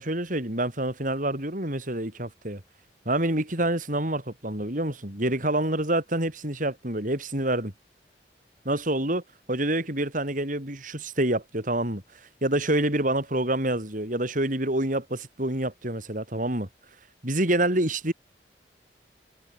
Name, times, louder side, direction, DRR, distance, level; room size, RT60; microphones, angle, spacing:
voice 1, 0.0-2.6 3.1-7.7 8.7-9.2 9.5-12.0 12.4-16.7 17.2-18.1, right 1 dB, 50° right, 5.8 m, -27 dB
head